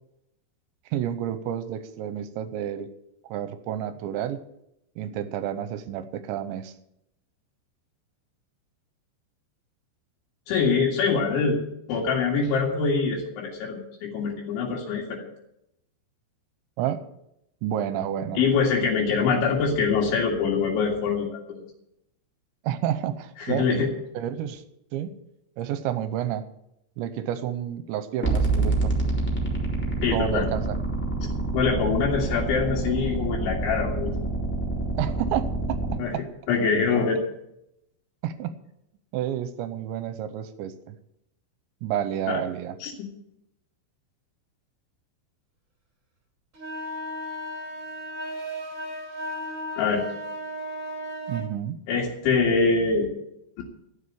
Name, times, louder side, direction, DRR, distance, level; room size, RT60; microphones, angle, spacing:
voice 1, 0.9-2.9 3.2-4.4 5.0-6.7 16.8-17.0 17.6-18.4 22.6-23.7 24.2-24.6 24.9-25.1 25.6-26.5 27.0-28.9 30.1-30.8 35.0-36.2 38.2-38.5 39.1-41.0 41.8-42.8 51.3-51.8, right 10 dB, 80° right, 12 dB, 2.9 m, -30 dB
voice 2, 10.5-11.6 11.9-15.3 18.4-21.6 23.4-23.9 30.0-30.5 31.5-34.1 36.0-36.1 36.5-37.2 42.3-42.4 42.8-43.1 49.8-50.1 51.9-53.1 53.6-53.7, left 5 dB, 70° left, -3 dB, 4.4 m, -24 dB
sound 1, 28.2-36.0, right 2 dB, 5° left, 1.4 m, -27 dB
sound 2, 46.5-51.5, equal, 25° right, 1.8 m, -35 dB
13.0 x 8.0 x 8.6 m, 0.80 s
omnidirectional pair, 5.7 m